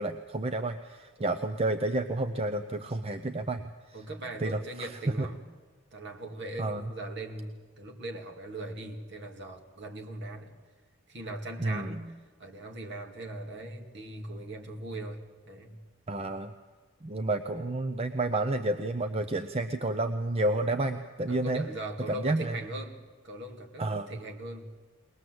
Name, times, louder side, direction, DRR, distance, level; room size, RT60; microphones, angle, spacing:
voice 1, 0.0-3.6 3.9-4.0 4.4-4.9 5.2-5.3 6.6-6.8 11.6-12.0 16.1-16.5 17.0-21.7 22.1-22.5 23.8-24.1, right 2 dB, 25° right, 8 dB, 0.6 m, -30 dB
voice 2, 3.9-5.4 5.9-10.5 11.1-12.1 12.4-15.8 21.3-23.0 23.2-24.7, right 2 dB, 55° right, 2 dB, 2.2 m, -40 dB
21.0 x 20.0 x 7.8 m, 1.4 s
head